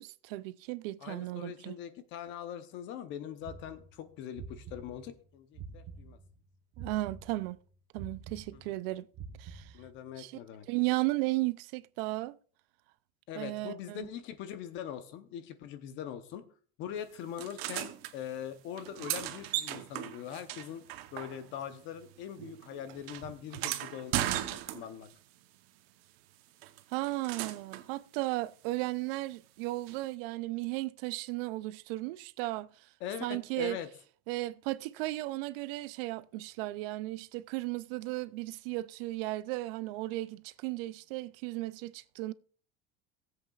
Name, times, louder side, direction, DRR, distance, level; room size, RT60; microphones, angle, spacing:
voice 1, 0.0-1.8 6.8-7.6 7.9-9.1 9.4-9.7 10.2-10.4 10.7-12.4 13.4-14.1 26.9-32.7 33.2-33.8 34.3-42.3, right 19 dB, 70° right, 0.5 m, -35 dB
voice 2, 1.0-6.2 8.5-8.8 9.7-10.7 13.3-16.5 16.8-20.8 21.1-25.1 33.0-33.9, left 9 dB, 40° left, 0.8 m, -42 dB
sound 1, 3.4-6.4 6.7-10.1, right 5 dB, 30° right, 1.0 m, -47 dB
sound 2, 17.4-18.1 18.7-21.7 22.0-25.1 26.6-27.9 29.9-30.0, right 14 dB, 85° right, 0.9 m, -37 dB
18.0 x 7.9 x 2.3 m
cardioid pair, 180°, 30 cm